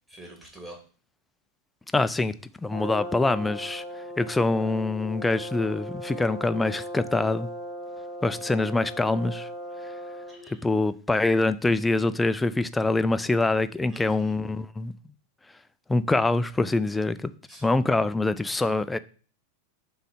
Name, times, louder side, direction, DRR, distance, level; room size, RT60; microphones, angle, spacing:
voice 1, 0.1-0.8 4.3-4.4 10.3-10.6 13.8-14.3 17.5-17.9, right 1 dB, 10° right, 2.4 m, -46 dB
voice 2, 1.9-2.3 2.6-3.8 4.2-7.5 8.2-9.5 10.6-14.9 15.9-17.3 17.6-19.0, left 2 dB, 10° left, 0.4 m, -24 dB
Brass instrument, 2.7-10.5, equal, 30° right, 2.0 m, -38 dB
7.5 x 3.2 x 5.6 m
figure-of-eight pair, 90°, 0 cm